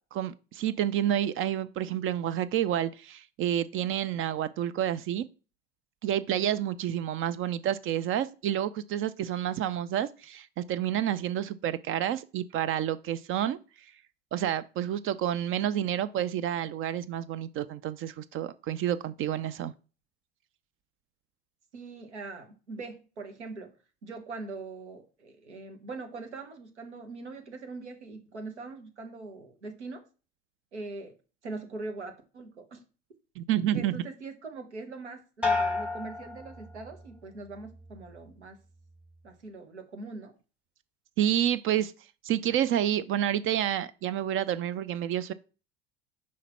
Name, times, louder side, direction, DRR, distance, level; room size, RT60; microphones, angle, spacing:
voice 1, 0.1-5.2 6.0-13.6 14.3-19.7 33.4-33.9 41.2-41.9 42.2-45.3, right 11 dB, 40° right, 0.4 m, -29 dB
voice 2, 21.7-23.7 24.0-30.0 30.7-31.1 31.4-32.8 33.7-38.6 39.2-40.3, right 3 dB, 85° right, 1.2 m, -42 dB
sound 1, 35.4-37.2 37.6-38.1, left 3 dB, 5° right, 1.3 m, -32 dB
5.6 x 3.1 x 5.5 m
hypercardioid pair, 70°, 33 cm